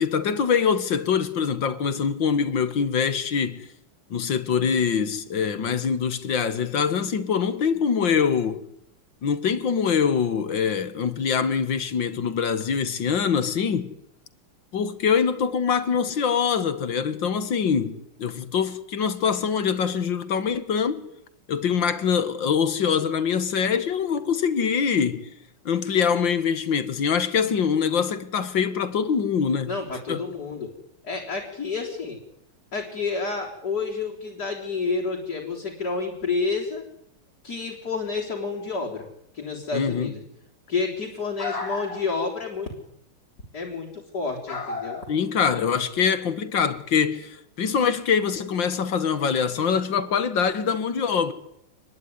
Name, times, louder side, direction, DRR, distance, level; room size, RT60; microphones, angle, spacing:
voice 1, 0.0-3.7 4.1-8.7 9.2-13.9 14.7-21.1 21.5-25.3 25.7-29.7 30.1-30.2 39.7-40.1 45.1-51.3, left 6 dB, 60° left, 2.3 m, -24 dB
voice 2, 29.7-30.7 31.0-32.2 32.7-36.8 37.4-39.1 39.3-40.2 40.7-42.7 43.5-45.0, left 4 dB, 45° left, 4.3 m, -29 dB
27.0 x 21.0 x 9.6 m
omnidirectional pair, 2.3 m